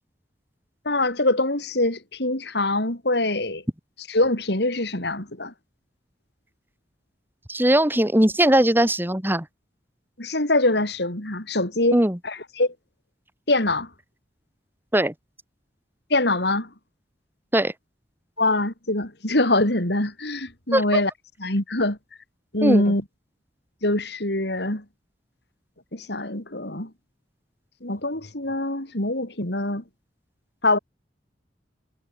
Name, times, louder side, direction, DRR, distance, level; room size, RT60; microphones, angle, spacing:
voice 1, 0.8-3.6 4.1-5.5 10.2-12.7 13.5-13.9 16.1-16.7 18.4-21.1 21.4-22.0 22.5-23.0 23.8-24.8 25.9-26.9 27.8-29.8 30.6-30.8, left 2 dB, 65° left, 5.0 m, -24 dB
voice 2, 7.5-9.5 11.9-12.2 14.9-15.1 17.5-17.7 20.7-20.8 22.6-22.9, right 1 dB, 10° right, 2.6 m, -19 dB
head